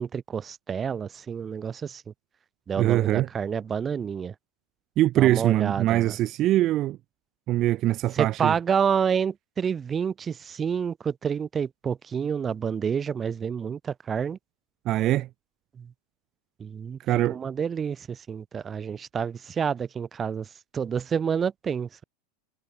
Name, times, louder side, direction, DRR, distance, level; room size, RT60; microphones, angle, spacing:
voice 1, 0.0-2.0 2.7-4.3 5.2-6.2 8.1-14.4 15.8-15.9 16.6-17.0 17.3-20.5 20.7-22.0, right 7 dB, 25° right, 1.1 m, -28 dB
voice 2, 2.8-3.3 5.0-7.0 7.5-8.5 14.8-15.3 17.1-17.4, right 15 dB, 40° right, 0.8 m, -22 dB
figure-of-eight pair, 85°, 0 cm